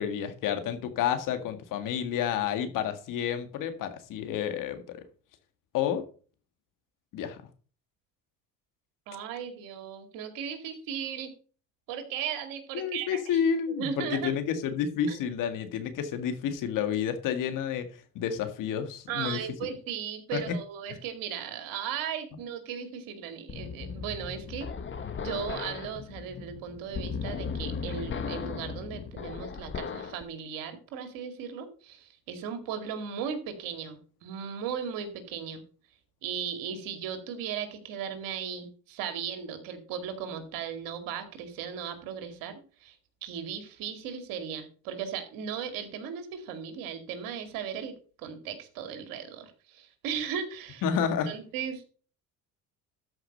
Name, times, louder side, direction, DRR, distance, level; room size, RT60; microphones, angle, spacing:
voice 1, 0.0-5.0 5.7-6.0 7.1-7.5 12.7-17.9 18.2-19.4 20.3-20.5 50.8-51.3, left 8 dB, 70° left, 1.9 m, -30 dB
voice 2, 9.1-11.3 11.9-13.4 13.8-14.3 15.1-15.2 19.1-24.7 25.2-35.6 36.2-43.0 43.2-50.8 51.3-51.8, right 8 dB, 75° right, 2.3 m, -37 dB
sound 1, 23.5-30.2, left 6 dB, 35° left, 1.3 m, -37 dB
13.0 x 4.9 x 5.3 m
supercardioid pair, 95°, 34 cm